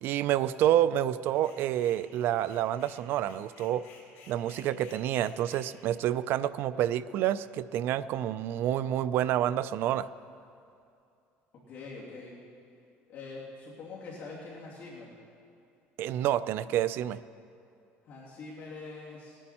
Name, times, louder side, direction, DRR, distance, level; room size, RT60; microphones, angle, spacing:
voice 1, 0.0-3.9 4.3-10.1 16.0-17.2, right 11 dB, 55° right, 15 dB, 0.4 m, -28 dB
sound 1, 1.3-2.1 2.4-5.7, left 4 dB, 85° left, 3.3 m, -55 dB
voice 2, 11.7-12.3 13.1-15.1 18.0-19.4, left 3 dB, 45° left, -5 dB, 2.6 m, -44 dB
19.5 x 10.0 x 4.3 m, 2.6 s
cardioid pair, 160°, 5 cm